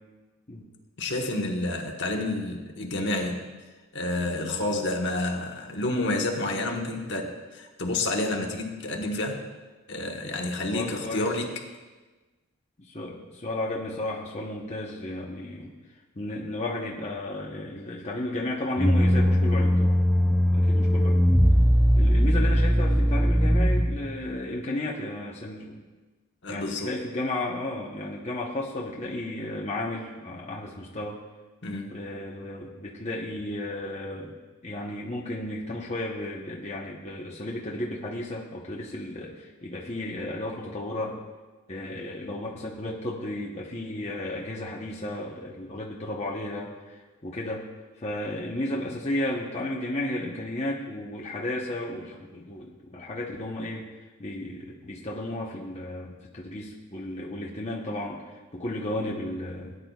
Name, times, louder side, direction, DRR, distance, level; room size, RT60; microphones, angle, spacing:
voice 1, 1.0-3.4 3.9-9.4 9.9-11.5 26.4-26.9 31.6-32.0, left 2 dB, 55° left, 1 dB, 1.3 m, -29 dB
voice 2, 10.7-11.3 12.9-15.7 16.1-20.0 20.5-21.2 21.9-25.8 26.5-31.2 31.9-34.3 34.6-41.2 41.7-47.7 48.0-53.9 54.2-58.2 58.5-59.8, left 1 dB, 30° left, -3 dB, 1.0 m, -33 dB
sound 1, 18.8-24.2, equal, ahead, 0.3 m, -20 dB
18.0 x 9.7 x 2.4 m, 1.3 s
head